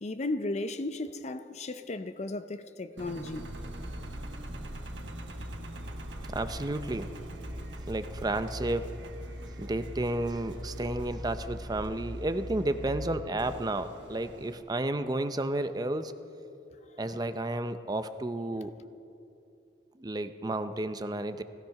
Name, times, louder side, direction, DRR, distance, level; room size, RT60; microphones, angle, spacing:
voice 1, 0.0-3.5, left 2 dB, 40° left, 0.5 m, -35 dB
Engine, 3.0-14.6, equal, 90° right, 1.3 m, -41 dB
voice 2, 6.2-7.1 7.9-8.9 9.6-16.2 17.0-18.7 20.0-21.4, right 1 dB, 20° right, 0.5 m, -32 dB
16.5 x 14.5 x 5.8 m
head